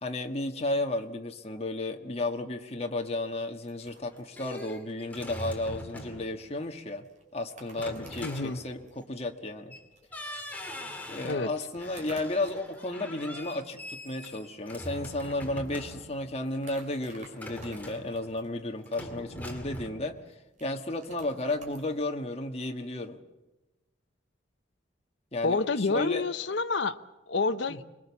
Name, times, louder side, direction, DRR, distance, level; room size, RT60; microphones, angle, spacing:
voice 1, 0.0-7.0 7.3-9.7 11.1-23.2 25.3-26.2 27.7-27.8, left 2 dB, 30° left, 1.5 m, -33 dB
sound 1, 3.6-22.2, right 2 dB, 40° right, 5.1 m, -57 dB
sound 2, 3.9-6.4 7.7-9.1 9.7-9.8 10.1-11.5 11.8-16.3 17.3-18.5 18.9-19.9, left 1 dB, 10° left, 2.5 m, -42 dB
voice 2, 8.2-8.6 11.2-11.5 25.4-27.0 27.3-27.8, left 3 dB, 70° left, 0.8 m, -28 dB
26.0 x 21.0 x 7.2 m
head